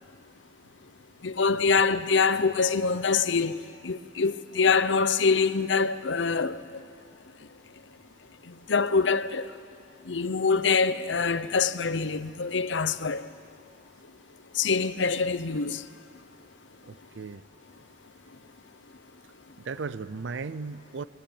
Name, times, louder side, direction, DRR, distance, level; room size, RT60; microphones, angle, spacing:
voice 1, 1.2-6.6 8.7-9.5 10.1-13.3 14.5-15.8, left 5 dB, 85° left, 0.8 m, -25 dB
voice 2, 16.8-17.4 19.6-21.0, right 4 dB, 85° right, 0.5 m, -36 dB
22.0 x 19.0 x 8.8 m
head